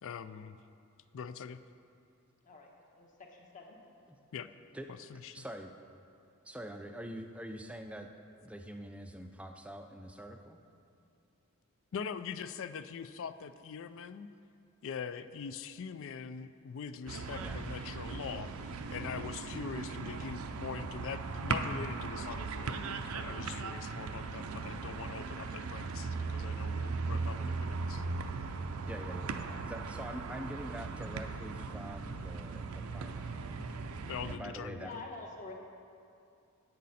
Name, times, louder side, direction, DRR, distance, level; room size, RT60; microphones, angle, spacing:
voice 1, 0.0-0.6 1.1-1.6 4.3-4.5 4.9-5.4 11.9-14.3 14.8-28.0 34.1-35.0, left 6 dB, 60° left, 12 dB, 0.4 m, -43 dB
voice 2, 2.4-3.8 29.9-30.1 34.8-35.5, left 3 dB, 35° left, 0 dB, 1.2 m, -48 dB
voice 3, 4.7-5.7 6.4-8.1 8.4-10.6 17.4-17.6 28.9-33.3 34.3-35.0, right 1 dB, 5° right, 5 dB, 0.4 m, -45 dB
sound 1, 17.1-34.4, right 4 dB, 75° right, 0.5 m, -38 dB
10.5 x 8.4 x 4.2 m, 2.5 s
head